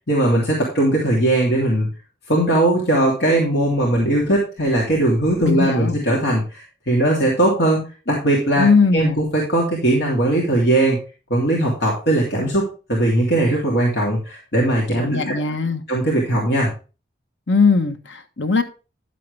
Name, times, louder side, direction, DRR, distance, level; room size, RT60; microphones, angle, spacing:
voice 1, 0.1-1.9 2.3-8.7 8.9-11.0 11.3-15.3 15.9-16.7, right 1 dB, 60° left, -3 dB, 3.0 m, -19 dB
voice 2, 5.4-6.0 8.6-9.2 15.0-15.8 17.5-18.6, left 4 dB, 80° left, 8 dB, 1.4 m, -19 dB
11.0 x 7.6 x 3.4 m, 0.32 s
head